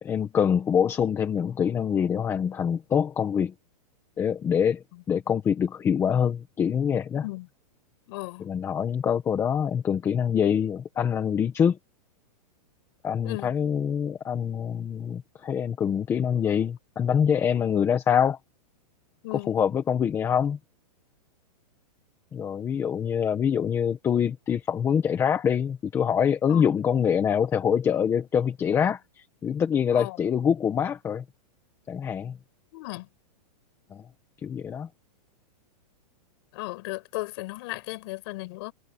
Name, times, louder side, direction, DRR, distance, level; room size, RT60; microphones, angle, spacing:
voice 1, 0.0-3.5 4.2-7.2 8.4-11.8 13.0-18.4 19.4-20.6 22.3-31.2 31.9-32.4 33.9-34.0 34.4-34.9, left 8 dB, 10° left, 1.6 m, -25 dB
voice 2, 8.1-8.4 13.2-13.5 19.2-19.6 26.5-26.7 29.9-30.2 32.7-33.1 36.5-38.7, left 22 dB, 40° left, 6.9 m, -35 dB
hypercardioid pair, 170°, 21 cm